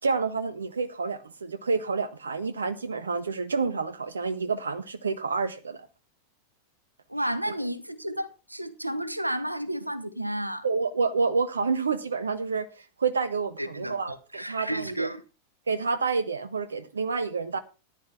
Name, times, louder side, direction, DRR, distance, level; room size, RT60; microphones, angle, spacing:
voice 1, 0.0-5.9 7.5-7.6 10.6-15.1 15.7-17.6, right 4 dB, 70° right, 1.0 m, -29 dB
voice 2, 7.1-10.6 13.6-15.2, right 1 dB, 85° right, 1.1 m, -32 dB
15.0 x 11.0 x 3.5 m
figure-of-eight pair, 90°, 0 cm